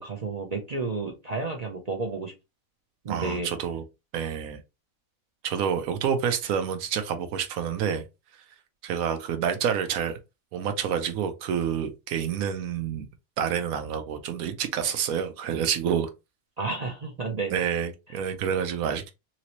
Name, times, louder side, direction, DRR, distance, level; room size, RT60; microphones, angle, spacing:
voice 1, 0.0-2.3 3.0-3.5 16.6-17.6, right 3 dB, 55° right, 0.4 m, -31 dB
voice 2, 3.1-3.8 4.1-4.6 5.4-8.0 8.8-10.2 10.5-13.1 13.4-16.1 17.5-19.1, right 8 dB, 90° right, 1.1 m, -28 dB
2.9 x 2.9 x 2.9 m
omnidirectional pair, 1.4 m